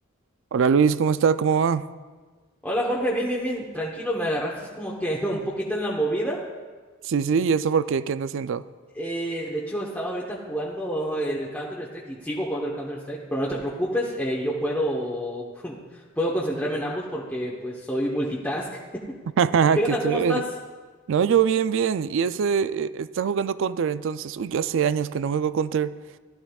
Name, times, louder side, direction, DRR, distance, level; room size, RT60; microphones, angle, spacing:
voice 1, 0.5-1.9 7.0-8.6 19.4-20.4 21.1-25.9, right 6 dB, 65° right, 15 dB, 0.4 m, -23 dB
voice 2, 2.6-6.4 8.9-18.7 18.9-19.2 19.7-20.5, equal, 10° left, -5 dB, 1.0 m, -28 dB
17.5 x 12.5 x 2.4 m, 1.4 s
head